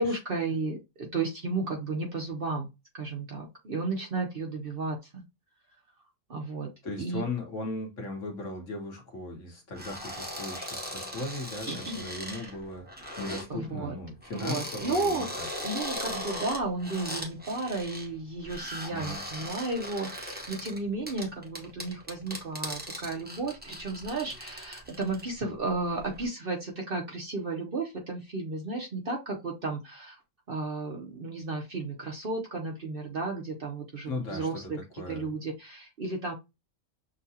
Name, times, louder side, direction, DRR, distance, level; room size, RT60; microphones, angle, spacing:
voice 1, 0.0-2.7 2.9-5.2 6.3-6.7 7.0-7.2 11.7-12.0 12.3-12.5 13.5-14.0 14.3-15.3 15.6-30.2 30.5-34.8 35.1-36.3, right 3 dB, 45° right, 0.9 m, -33 dB
voice 2, 6.8-15.8 18.9-19.2 34.1-35.3, left 2 dB, 55° left, 1.5 m, -38 dB
sound 1, 9.7-13.5 14.2-18.1 18.4-25.3 25.7-26.2, equal, 10° right, 0.8 m, -39 dB
6.4 x 2.3 x 2.7 m
omnidirectional pair, 1.6 m